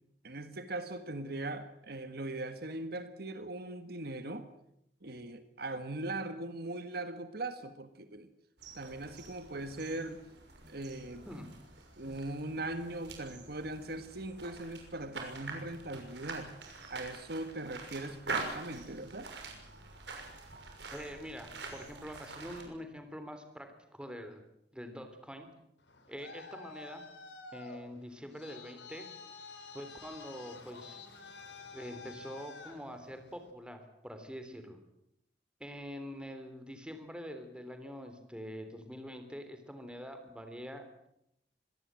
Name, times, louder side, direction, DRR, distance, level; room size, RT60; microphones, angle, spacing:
voice 1, 0.2-4.5 5.0-8.3 8.7-10.2 10.7-11.3 12.0-16.5 16.9-19.3, right 2 dB, 60° right, 10 dB, 1.7 m, -40 dB
sound 1, 8.6-22.6, right 3 dB, 80° right, 6.1 m, -45 dB
voice 2, 20.9-24.4 24.7-25.5 26.1-27.0 27.5-29.1 29.7-31.0 31.7-34.8 35.6-41.1, equal, 5° right, 7 dB, 3.5 m, -45 dB
Traffic noise roadway noise, 25.8-33.5, left 4 dB, 90° left, 4.0 m, -50 dB
25.5 x 18.0 x 7.7 m, 0.78 s
head